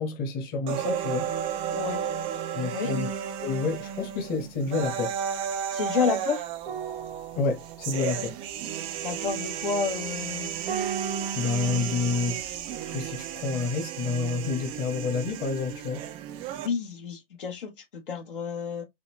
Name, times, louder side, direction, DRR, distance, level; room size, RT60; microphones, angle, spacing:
voice 1, 0.0-1.3 2.5-3.1 3.4-5.1 7.3-8.4 11.3-12.4 12.7-16.0, left 4 dB, 30° left, 1.3 m, -29 dB
sound 1, 0.7-16.7, right 9 dB, 20° right, 0.4 m, -33 dB
voice 2, 1.7-2.0 2.7-3.0 5.7-6.4 9.0-10.5 11.6-12.4 16.6-18.9, left 6 dB, 60° left, 1.1 m, -30 dB
sound 2, 6.6-15.3 15.6-15.8, right 7 dB, 80° right, 1.1 m, -41 dB
4.1 x 2.7 x 2.9 m
figure-of-eight pair, 100°, 30 cm